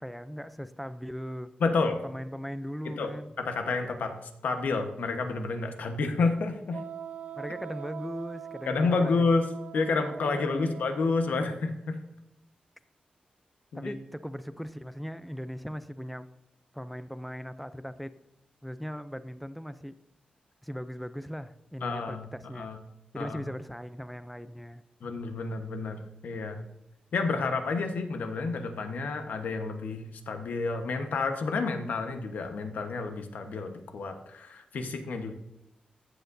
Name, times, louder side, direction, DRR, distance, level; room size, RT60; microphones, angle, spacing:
voice 1, 0.0-1.5 2.0-3.3 7.4-9.3 10.3-10.7 13.7-16.3 16.7-18.1 18.6-20.0 20.6-22.7 23.1-24.8, equal, ahead, 12 dB, 0.5 m, -39 dB
voice 2, 1.6-2.0 2.8-3.1 3.4-6.8 8.7-12.0 13.7-13.9 21.8-22.3 22.5-22.8 23.1-23.4 25.0-26.6 27.1-35.3, left 4 dB, 80° left, 6 dB, 1.2 m, -30 dB
Wind instrument woodwind instrument, 6.7-11.4, right 8 dB, 55° right, 0.4 m, -42 dB
14.5 x 8.1 x 2.7 m, 0.85 s
wide cardioid pair, 145°, 3 cm